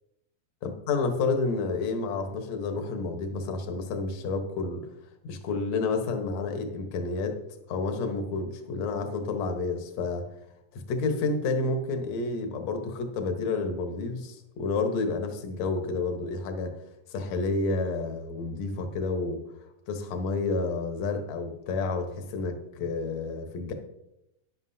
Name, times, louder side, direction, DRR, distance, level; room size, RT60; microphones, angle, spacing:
voice 1, 0.6-4.9 5.2-7.4 7.7-10.3 10.7-16.8 17.1-19.4 19.9-23.7, left 3 dB, 60° left, 5 dB, 2.1 m, -30 dB
13.5 x 10.5 x 2.7 m, 0.86 s
omnidirectional pair, 3.9 m